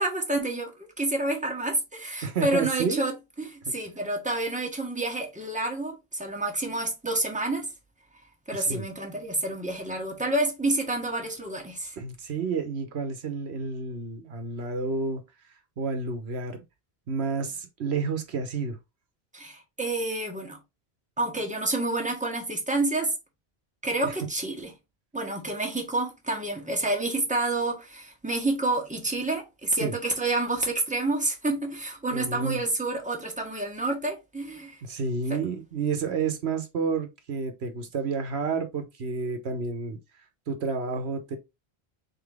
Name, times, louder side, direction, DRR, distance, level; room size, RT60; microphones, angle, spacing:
voice 1, 0.0-7.7 8.5-11.9 19.3-20.6 21.2-23.1 23.8-24.7 25.1-34.8 35.3-35.4, right 2 dB, 5° right, 1.3 m, -29 dB
voice 2, 2.2-3.0 3.7-3.8 8.5-8.8 12.0-15.2 15.8-16.6 17.1-18.8 24.0-24.1 29.8-29.9 32.1-32.6 34.8-40.0 40.5-41.4, right 4 dB, 90° right, 1.3 m, -30 dB
4.0 x 3.9 x 3.4 m
omnidirectional pair, 1.1 m